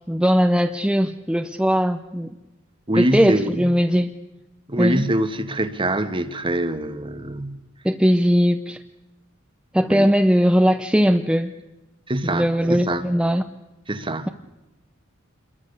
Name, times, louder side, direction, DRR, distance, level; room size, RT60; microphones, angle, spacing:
voice 1, 0.1-2.3 3.0-4.1 4.8-5.0 7.8-8.8 9.7-11.5 12.2-13.4, equal, 5° right, 0.7 m, -19 dB
voice 2, 2.9-3.7 4.7-7.6 9.9-10.1 12.1-13.0 13.9-14.3, right 1 dB, 25° right, 1.5 m, -24 dB
27.0 x 22.0 x 6.7 m
head